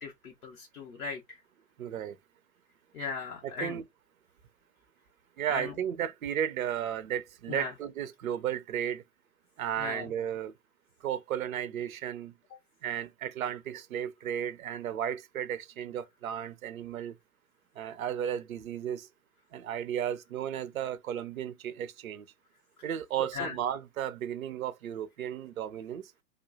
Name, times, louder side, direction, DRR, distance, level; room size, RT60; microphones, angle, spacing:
voice 1, 0.0-1.4 2.9-3.8 5.5-5.7 7.5-7.7 9.8-10.1 23.3-23.6, left 5 dB, 60° left, 1.0 m, -38 dB
voice 2, 1.8-2.2 3.4-3.8 5.4-9.0 9.6-10.5 11.0-12.3 12.8-17.2 17.8-19.1 19.5-22.3 22.8-26.1, right 10 dB, 55° right, 0.6 m, -34 dB
3.6 x 2.3 x 2.5 m
figure-of-eight pair, 125°, 50 cm